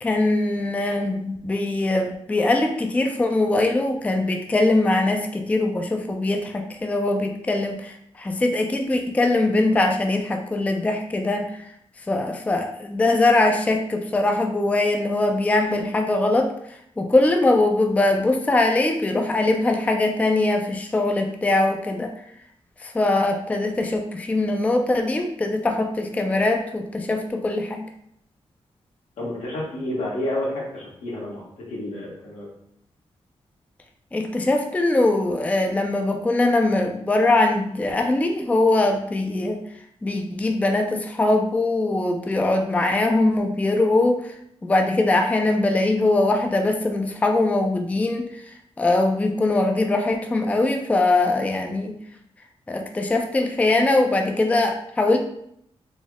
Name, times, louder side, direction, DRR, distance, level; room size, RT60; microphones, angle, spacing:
voice 1, 0.0-11.6 12.1-16.5 17.0-22.1 22.8-27.9 34.1-39.6 40.0-44.3 44.6-48.4 48.8-52.0 52.7-55.2, left 2 dB, 15° left, 4 dB, 0.3 m, -22 dB
voice 2, 29.2-31.4 31.7-32.5, left 1 dB, 85° left, -5 dB, 1.4 m, -29 dB
4.0 x 2.0 x 3.5 m, 0.72 s
wide cardioid pair, 105°, 11 cm